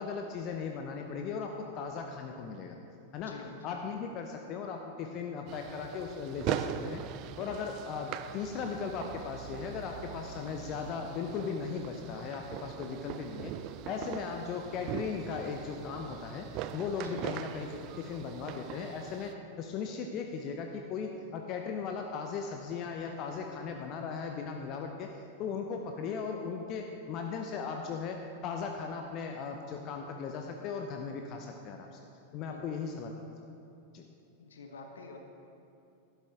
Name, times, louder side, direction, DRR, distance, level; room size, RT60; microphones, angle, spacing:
voice 1, 0.0-2.8 3.1-3.4 3.6-7.0 7.4-13.5 13.9-25.1 25.4-31.9 32.3-33.1 33.9-34.0, left 5 dB, 40° left, 3 dB, 0.7 m, -37 dB
voice 2, 3.2-3.7 17.0-17.3 32.4-32.8 34.4-35.2, left 4 dB, 65° left, 3 dB, 1.3 m, -48 dB
sound 1, 5.5-19.3, right 11 dB, 40° right, 0.4 m, -41 dB
12.0 x 11.5 x 3.6 m, 2.8 s
figure-of-eight pair, 90°, 0 cm